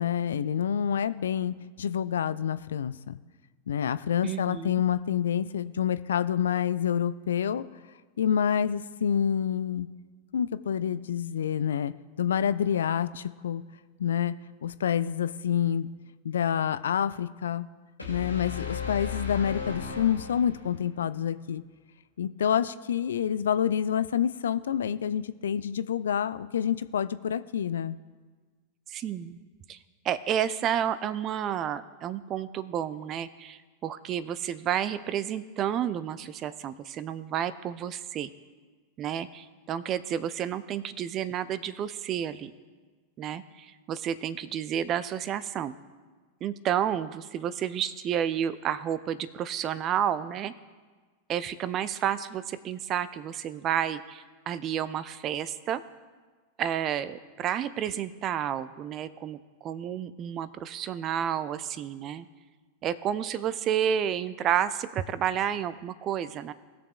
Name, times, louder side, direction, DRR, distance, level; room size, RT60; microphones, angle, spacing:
voice 1, 0.0-3.2 3.7-7.6 8.2-9.9 10.3-11.9 12.2-13.6 14.0-14.3 14.6-15.9 16.2-17.7 18.1-21.6 22.2-28.0, left 8 dB, 65° left, 14 dB, 0.3 m, -27 dB
voice 2, 4.2-4.8 28.9-29.4 29.7-29.8 30.0-38.3 39.0-42.5 43.2-45.7 46.4-50.5 51.3-55.8 56.6-62.3 62.8-66.5, right 9 dB, 30° right, 15 dB, 0.5 m, -31 dB
sound 1, 18.0-20.9, left 6 dB, 80° left, 1.7 m, -36 dB
20.0 x 6.8 x 2.4 m, 1.4 s
figure-of-eight pair, 90°, 0 cm